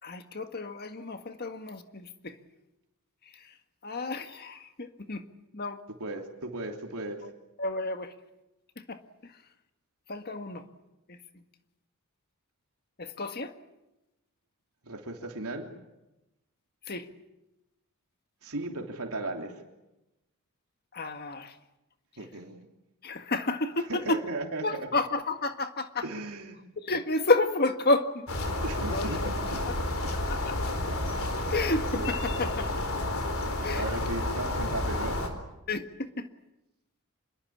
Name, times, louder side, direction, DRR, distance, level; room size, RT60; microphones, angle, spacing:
voice 1, 0.0-2.4 3.2-3.6 3.8-5.3 5.5-5.8 7.2-7.3 7.6-8.1 8.7-9.4 10.1-10.7 11.1-11.4 13.0-13.5 16.8-17.1 20.9-21.6 22.2-22.3 23.0-24.2 24.6-26.1 26.8-29.8 30.1-30.7 31.5-32.7 33.6-33.9 35.7-36.3, left 2 dB, 45° left, 7 dB, 1.8 m, -31 dB
voice 2, 6.0-7.2 14.8-15.7 18.4-19.6 22.2-22.6 23.9-24.9 26.0-26.6 28.6-29.3 30.0-30.1 31.9-32.1 33.7-35.2, right 2 dB, 80° right, 2 dB, 3.1 m, -36 dB
sound 1, 28.3-35.3, left 1 dB, 65° left, 4.2 m, -30 dB
27.0 x 22.0 x 8.7 m, 0.97 s
head